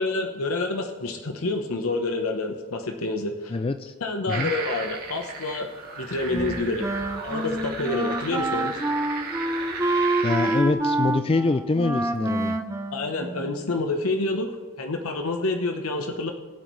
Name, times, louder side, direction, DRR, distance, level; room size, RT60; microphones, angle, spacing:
voice 1, 0.0-3.5 4.0-5.7 6.0-6.9 7.2-8.7 12.9-14.5 14.8-16.3, left 2 dB, 80° left, 4 dB, 1.0 m, -28 dB
voice 2, 3.5-3.9 4.3-4.5 10.2-12.6, left 3 dB, 25° left, 10 dB, 0.3 m, -25 dB
sound 1, 4.3-10.6, right 4 dB, 45° right, 2.1 m, -35 dB
Wind instrument woodwind instrument, 6.3-13.8, right 2 dB, 15° right, 0.6 m, -27 dB
20.5 x 8.0 x 3.2 m, 1.5 s
head